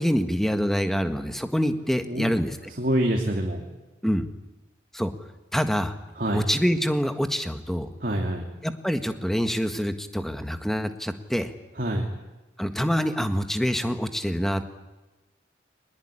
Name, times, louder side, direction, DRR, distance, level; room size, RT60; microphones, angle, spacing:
voice 1, 0.0-2.6 4.0-4.3 4.9-5.1 5.5-5.9 6.3-7.9 8.6-11.5 12.6-14.7, equal, ahead, 8 dB, 1.6 m, -26 dB
voice 2, 2.8-3.6 6.1-6.4 8.0-8.5 11.7-12.1, right 1 dB, 50° right, 2 dB, 2.8 m, -26 dB
23.0 x 20.5 x 9.9 m, 1.1 s
head